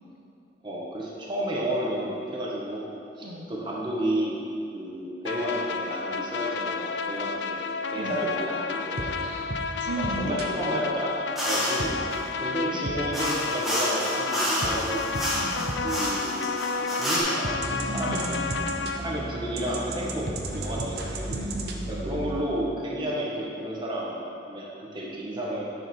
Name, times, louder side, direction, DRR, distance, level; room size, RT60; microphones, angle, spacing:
voice 1, 0.6-4.4 4.7-7.6 7.9-9.1 10.2-11.1 11.4-15.1 15.8-16.6 16.9-17.6 17.9-18.5 19.0-21.4 21.9-24.2 24.5-24.7 24.9-25.6, right 1 dB, 25° right, -5 dB, 1.5 m, -31 dB
sound 1, 5.2-19.0, left 5 dB, 65° left, 0.4 m, -31 dB
voice 2, 7.9-8.2 9.2-9.5 9.8-10.4 12.7-13.0 15.3-15.7 17.9-18.7 21.3-22.3, right 1 dB, 85° right, 0 dB, 0.9 m, -36 dB
sound 2, 9.0-10.5 11.8-13.6 14.6-16.1 16.8-22.4, right 2 dB, 55° right, 0.9 m, -35 dB
sound 3, 11.4-11.9 13.1-17.2, equal, ahead, 1.7 m, -29 dB
10.0 x 6.4 x 4.6 m, 2.6 s
head